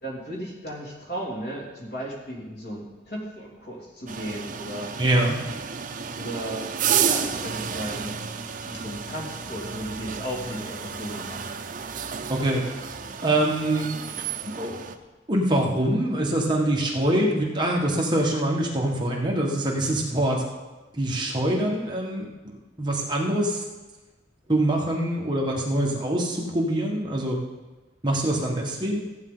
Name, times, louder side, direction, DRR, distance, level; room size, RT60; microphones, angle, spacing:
voice 1, 0.0-4.9 6.1-6.7 7.0-8.3 8.6-11.4, equal, 60° left, -3 dB, 2.7 m, -35 dB
sound 1, 4.1-15.0, right 7 dB, 45° right, 0.6 m, -31 dB
voice 2, 5.0-5.4 12.3-12.6 13.2-13.9 14.5-14.8 15.3-20.4 20.9-23.6 24.5-27.4 28.0-29.0, right 1 dB, 25° right, -2 dB, 1.5 m, -24 dB
15.0 x 9.0 x 3.9 m, 1.2 s
head